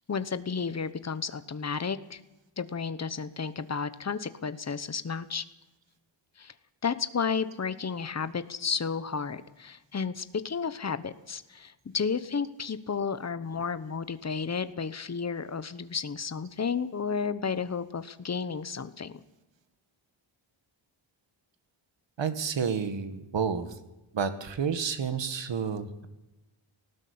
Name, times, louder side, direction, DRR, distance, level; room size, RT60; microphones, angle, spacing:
voice 1, 0.1-2.2 2.6-5.4 6.4-6.5 6.8-19.2, left 5 dB, 35° left, 13 dB, 1.0 m, -32 dB
voice 2, 22.2-23.7 24.1-26.1, right 6 dB, 60° right, 11 dB, 1.9 m, -30 dB
19.0 x 16.0 x 8.6 m, 1.0 s
wide cardioid pair, 160°, 48 cm